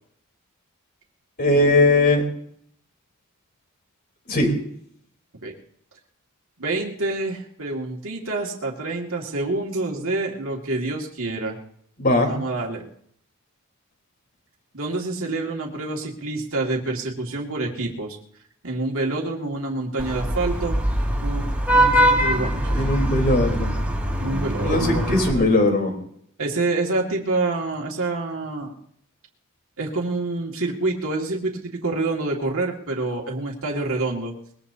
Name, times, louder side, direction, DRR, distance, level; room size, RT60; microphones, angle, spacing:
voice 1, 1.4-2.2 4.3-4.5 12.0-12.3 22.7-23.7 24.6-25.9, left 2 dB, 45° left, 3 dB, 3.9 m, -19 dB
voice 2, 6.6-11.6 12.3-12.9 14.7-18.2 18.6-20.8 21.2-22.6 23.2-23.4 24.2-25.5 26.4-28.7 29.8-34.3, right 2 dB, 65° right, -1 dB, 2.3 m, -27 dB
Vehicle horn car horn honking / Traffic noise roadway noise, 20.0-25.3, right 1 dB, 5° right, 2.4 m, -22 dB
22.0 x 21.0 x 2.8 m, 0.66 s
head